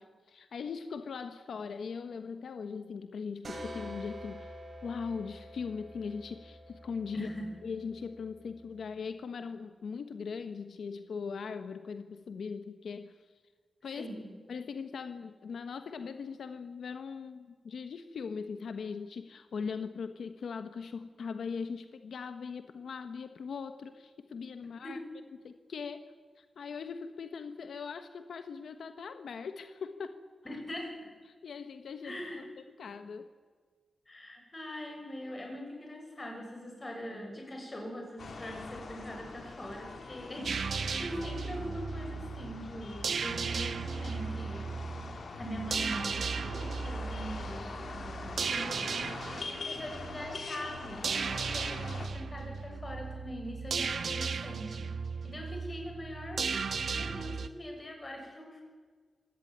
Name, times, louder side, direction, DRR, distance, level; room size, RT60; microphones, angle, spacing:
voice 1, 0.0-7.3 7.6-13.3 13.8-14.1 14.5-25.0 25.4-30.2 31.3-33.3, left 5 dB, 85° left, 9 dB, 1.3 m, -40 dB
sound 1, 3.4-8.9, equal, 50° right, 7.3 m, -47 dB
voice 2, 7.1-7.4 13.9-14.3 24.8-25.1 30.4-30.9 32.0-32.4 34.1-44.7 45.4-48.9 49.5-54.9 55.2-56.5 56.9-58.6, equal, 25° left, 2 dB, 7.2 m, -42 dB
sound 2, 38.2-52.1, left 4 dB, 65° left, 3.6 m, -44 dB
sound 3, 40.4-57.5, right 5 dB, 65° right, 1.3 m, -36 dB
25.5 x 17.5 x 9.5 m, 1.5 s
wide cardioid pair, 130°, 0 cm